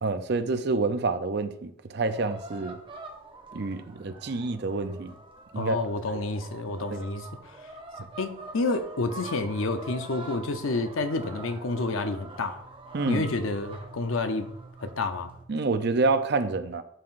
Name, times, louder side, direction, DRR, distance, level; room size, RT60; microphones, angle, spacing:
voice 1, 0.0-2.8 3.5-5.1 5.5-5.8 6.9-7.0 12.9-13.3 15.5-16.8, right 3 dB, 50° right, 0.5 m, -27 dB
sound 1, 2.1-15.4, right 2 dB, 25° right, 0.8 m, -44 dB
voice 2, 5.6-7.3 8.2-12.6 13.1-14.5 14.8-15.3, left 3 dB, 75° left, 0.7 m, -29 dB
11.0 x 5.8 x 2.6 m
head